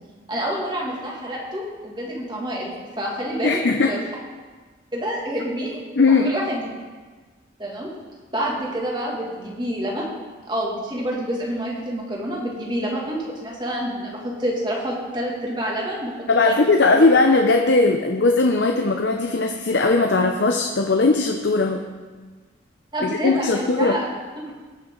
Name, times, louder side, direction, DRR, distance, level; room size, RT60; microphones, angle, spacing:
voice 1, 0.3-4.0 4.9-5.8 6.1-6.6 7.6-7.9 8.3-10.1 10.5-16.1 16.4-16.6 17.0-17.1 22.9-24.1, right 1 dB, 25° right, -3 dB, 2.3 m, -27 dB
voice 2, 3.4-4.0 6.0-6.3 16.3-21.8 23.0-24.0, left 3 dB, 65° left, 3 dB, 0.7 m, -18 dB
19.5 x 6.6 x 3.9 m, 1.4 s
head